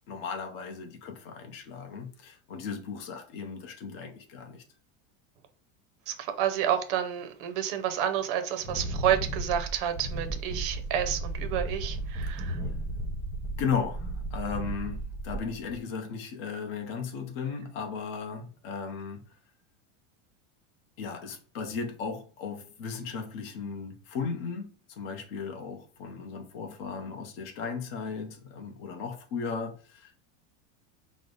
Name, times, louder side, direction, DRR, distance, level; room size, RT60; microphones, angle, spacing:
voice 1, 0.1-4.6 12.4-12.6 13.6-19.4 21.0-30.2, left 5 dB, 50° left, 0.7 m, -36 dB
voice 2, 6.1-12.6, right 10 dB, 45° right, 0.5 m, -29 dB
Wind, 8.6-15.8, right 2 dB, 5° right, 0.8 m, -34 dB
5.1 x 2.0 x 3.8 m
supercardioid pair, 180°, 39 cm